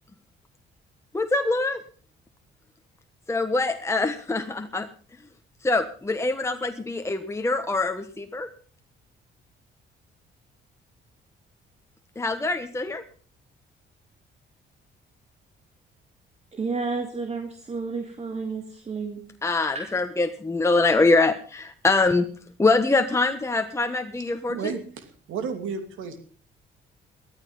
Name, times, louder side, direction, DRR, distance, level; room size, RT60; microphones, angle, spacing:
voice 1, 1.1-1.8 3.3-4.9 5.6-8.5 12.2-13.0 19.4-22.3 22.6-24.7, left 3 dB, 15° left, 6 dB, 1.3 m, -24 dB
voice 2, 16.5-19.2 19.7-19.9, right 4 dB, 35° right, 5 dB, 2.3 m, -31 dB
voice 3, 24.5-26.2, right 6 dB, 85° right, 8 dB, 2.9 m, -32 dB
14.5 x 13.0 x 5.5 m, 0.42 s
cardioid pair, 90°, 20 cm